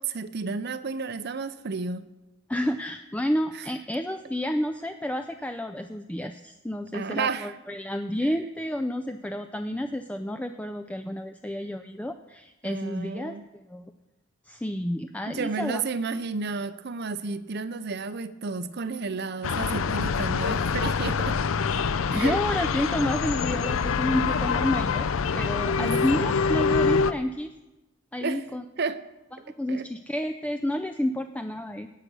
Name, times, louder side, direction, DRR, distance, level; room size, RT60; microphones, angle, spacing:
voice 1, 0.0-2.0 3.5-3.6 6.9-7.5 12.6-13.4 15.3-21.4 22.1-22.4 25.8-26.4 28.2-28.4 28.8-29.0 29.7-29.9, right 4 dB, 50° right, 12 dB, 0.6 m, -32 dB
voice 2, 2.5-13.4 13.7-13.9 14.5-15.8 22.1-25.1 25.3-27.5 28.1-28.6 29.6-31.9, left 1 dB, 5° left, 6 dB, 0.4 m, -30 dB
sound 1, 19.4-27.1, left 5 dB, 80° left, 0.5 m, -25 dB
17.5 x 6.7 x 6.1 m, 1.0 s
head